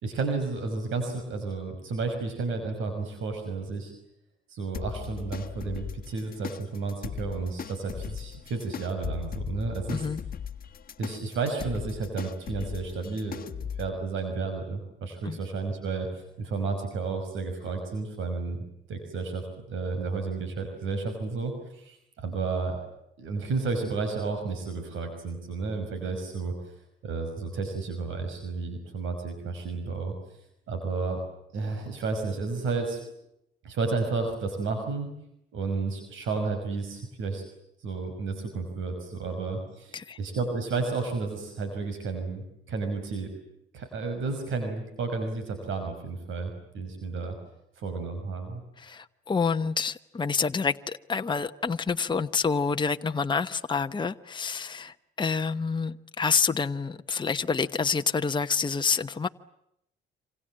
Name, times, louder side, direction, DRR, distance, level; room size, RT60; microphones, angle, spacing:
voice 1, 0.0-3.9 4.5-10.1 11.0-18.6 18.9-22.8 23.2-26.7 27.0-30.1 30.7-31.2 31.5-33.1 33.6-35.1 35.5-37.4 37.8-43.3 43.7-47.4 47.8-48.6, right 4 dB, 80° right, 5.8 m, -32 dB
sound 1, 4.7-13.9, left 8 dB, 50° left, 1.4 m, -38 dB
voice 2, 9.9-10.2 15.2-15.4 39.9-40.2 48.8-59.3, left 5 dB, 25° left, 1.0 m, -28 dB
27.5 x 27.0 x 7.6 m
cardioid pair, 90°, 20 cm